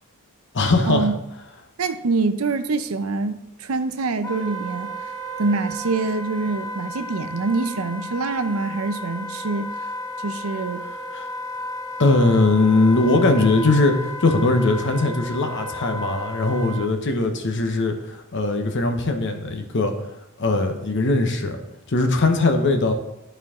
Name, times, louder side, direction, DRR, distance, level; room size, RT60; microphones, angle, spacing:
voice 1, 0.5-1.1 11.1-11.3 12.0-19.9 20.4-21.6 21.9-22.9, left 2 dB, 60° left, 5 dB, 0.9 m, -20 dB
voice 2, 1.8-4.9 5.4-9.7 10.2-10.8, right 3 dB, 85° right, 10 dB, 0.6 m, -25 dB
Wind instrument woodwind instrument, 4.2-16.9, equal, 15° left, 0.6 m, -34 dB
11.0 x 4.5 x 3.7 m, 0.89 s
head